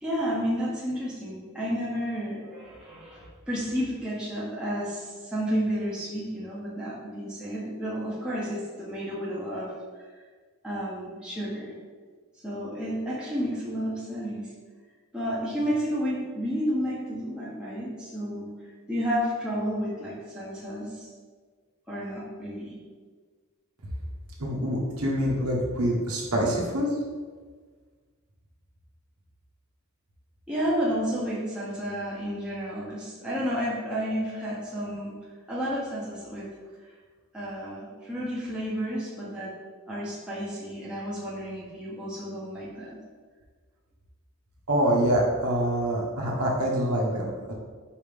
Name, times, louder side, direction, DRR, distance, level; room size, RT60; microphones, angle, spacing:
voice 1, 0.0-9.7 10.6-11.7 12.4-14.5 15.1-18.6 18.9-21.1 21.9-22.8 30.5-35.1 35.5-36.5 37.3-39.5 39.9-43.0, equal, 5° right, -8 dB, 1.0 m, -31 dB
voice 2, 24.4-26.9 44.7-47.5, right 1 dB, 80° right, -3 dB, 1.3 m, -25 dB
5.2 x 3.6 x 5.2 m, 1.5 s
head